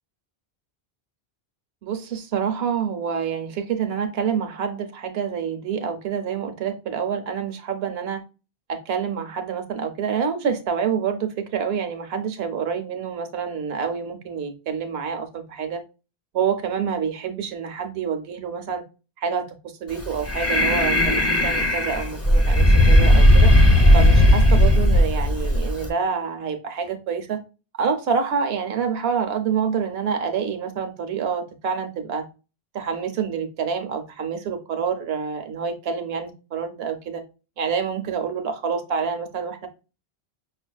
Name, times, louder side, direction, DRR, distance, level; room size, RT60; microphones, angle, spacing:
voice 1, 1.8-8.2 8.7-15.8 16.3-18.8 19.2-19.4 19.8-23.5 23.9-27.4 27.8-32.2 32.7-37.2 37.6-39.7, right 6 dB, 70° right, 0.9 m, -27 dB
Breathing, 19.9-25.9, left 1 dB, 15° left, 0.7 m, -16 dB
5.5 x 2.5 x 2.2 m
omnidirectional pair, 1.1 m